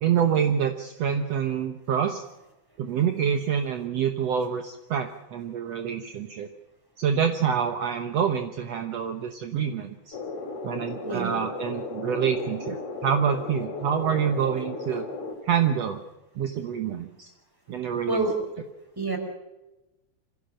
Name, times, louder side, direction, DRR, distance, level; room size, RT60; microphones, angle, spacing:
voice 1, 0.0-2.2 2.8-6.5 7.0-10.2 10.6-15.1 15.4-16.0 16.4-17.3 17.7-18.3, right 8 dB, 65° right, 6 dB, 2.1 m, -26 dB
sound 1, 10.1-15.3, left 3 dB, 50° left, 4.1 m, -35 dB
voice 2, 11.0-11.4 18.1-18.3 19.0-19.2, right 2 dB, 5° right, 4 dB, 4.5 m, -27 dB
25.5 x 16.5 x 6.5 m, 1.0 s
omnidirectional pair, 3.4 m